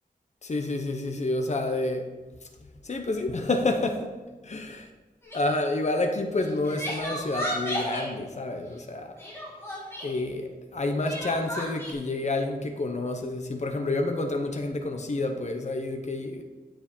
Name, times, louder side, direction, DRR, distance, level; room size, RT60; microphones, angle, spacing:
voice 1, 0.4-2.1 2.8-4.1 4.5-4.6 5.3-9.1 10.0-16.4, left 2 dB, 45° left, 4 dB, 1.0 m, -29 dB
Crying sobbing, 5.2-5.5 6.4-8.1 9.2-10.1 11.0-11.9, equal, 15° left, 3.4 m, -34 dB
10.0 x 7.8 x 4.4 m, 1.3 s
wide cardioid pair, 110°, 16 cm